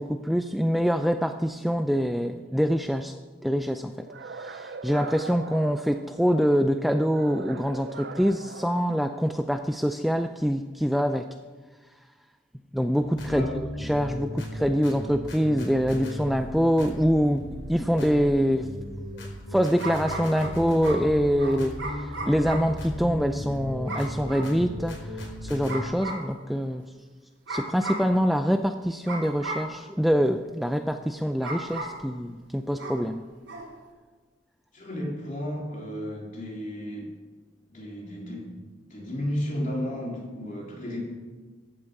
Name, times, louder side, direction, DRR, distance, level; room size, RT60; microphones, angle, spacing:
voice 1, 0.0-11.3 12.7-13.5 13.8-17.4 17.7-18.7 19.2-26.8 27.5-33.2, equal, ahead, 7 dB, 0.4 m, -25 dB
sound 1, 4.1-6.5 7.1-9.5, right 4 dB, 60° right, 0.6 m, -42 dB
sound 2, 13.0-25.8, left 1 dB, 90° left, 4.7 m, -36 dB
voice 2, 13.2-13.6 34.7-37.1 37.7-38.6 38.9-41.0, equal, 40° left, -3 dB, 3.8 m, -33 dB
sound 3, 16.9-17.0 19.8-22.8 23.9-24.6 25.7-26.3 27.5-28.2 29.1-29.8 31.4-32.1 32.8-33.1 33.5-33.7, right 2 dB, 80° right, 3.0 m, -36 dB
14.5 x 8.9 x 7.0 m, 1.4 s
head